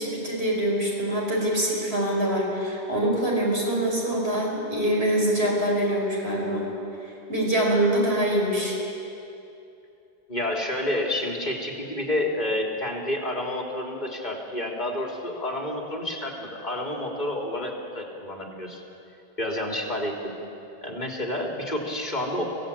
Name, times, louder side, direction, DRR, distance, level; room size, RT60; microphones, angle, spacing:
voice 1, 0.0-6.7 7.0-8.8, right 1 dB, 80° right, -2 dB, 5.7 m, -24 dB
voice 2, 10.3-18.8 19.4-20.3 20.8-22.4, left 1 dB, 45° left, 0 dB, 3.4 m, -29 dB
25.0 x 16.5 x 8.6 m, 2.8 s
omnidirectional pair, 1.0 m